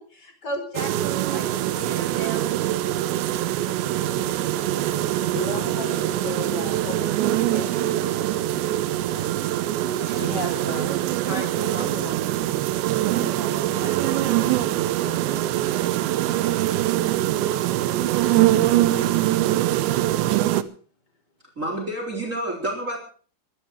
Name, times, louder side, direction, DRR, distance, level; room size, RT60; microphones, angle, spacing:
voice 1, 0.0-2.5 9.1-12.3 13.1-14.8 18.2-19.1, left 1 dB, 20° left, 5.0 m, -36 dB
sound 1, 0.8-20.6, right 14 dB, 80° right, 3.1 m, -23 dB
voice 2, 5.1-8.8, left 4 dB, 90° left, 5.9 m, -36 dB
voice 3, 21.5-23.0, right 1 dB, 20° right, 3.5 m, -28 dB
20.5 x 13.0 x 4.9 m
omnidirectional pair, 5.1 m